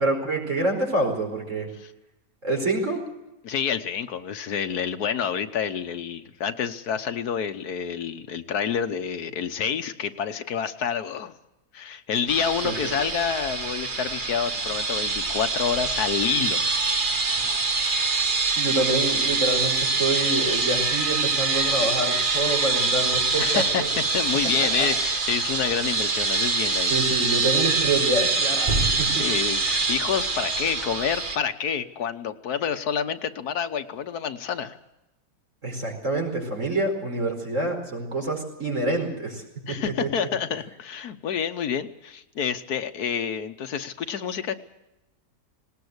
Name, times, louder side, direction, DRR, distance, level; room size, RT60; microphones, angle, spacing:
voice 1, 0.0-1.7 2.4-3.0 12.6-13.0 18.6-23.9 24.8-24.9 26.9-29.2 35.6-40.1, right 2 dB, 55° right, 2 dB, 5.2 m, -27 dB
voice 2, 3.4-11.3 11.7-16.7 23.4-27.0 29.1-34.8 39.7-44.6, left 7 dB, 85° left, 9 dB, 1.6 m, -28 dB
sound 1, 12.3-31.4, right 3 dB, 35° right, 1.4 m, -25 dB
19.5 x 19.0 x 8.0 m, 0.95 s
omnidirectional pair, 1.6 m